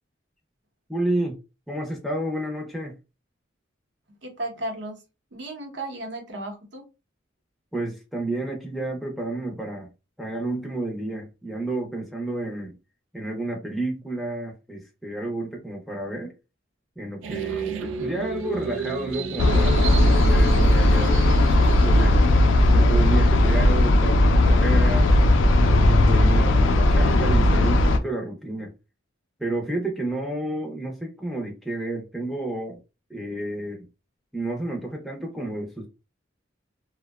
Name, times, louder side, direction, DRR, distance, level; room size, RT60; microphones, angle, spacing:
voice 1, 0.9-1.4 1.7-2.9 7.7-9.9 10.2-12.7 13.1-16.3 17.0-19.8 20.1-22.1 22.7-25.1 25.6-28.7 29.4-32.8 33.1-33.9 34.3-35.9, right 2 dB, ahead, 0.5 m, -30 dB
voice 2, 4.2-5.0 5.3-6.8, right 1 dB, 60° right, 0.8 m, -34 dB
sound 1, 17.2-25.9, right 2 dB, 85° right, 0.4 m, -34 dB
sound 2, 19.4-28.0, left 1 dB, 75° left, 0.4 m, -17 dB
2.7 x 2.1 x 2.2 m
head